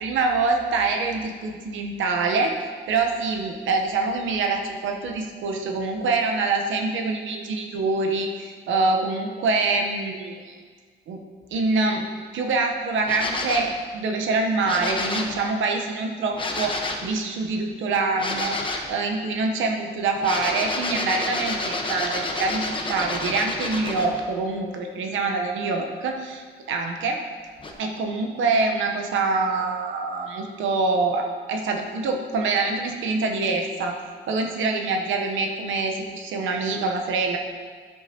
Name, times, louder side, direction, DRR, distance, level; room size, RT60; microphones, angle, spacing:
voice 1, 0.0-2.6 2.9-10.5 11.1-11.2 11.5-12.1 12.3-18.6 18.9-27.2 27.8-34.0 34.3-37.4, right 3 dB, 80° right, 3 dB, 1.0 m, -25 dB
sound 1, 13.0-13.8 14.6-15.4 16.3-17.1 18.2-18.9 20.2-24.2 27.6-27.7, left 2 dB, 25° left, 1.0 m, -29 dB
10.5 x 8.0 x 2.9 m, 1.5 s
cardioid pair, 90°, 20 cm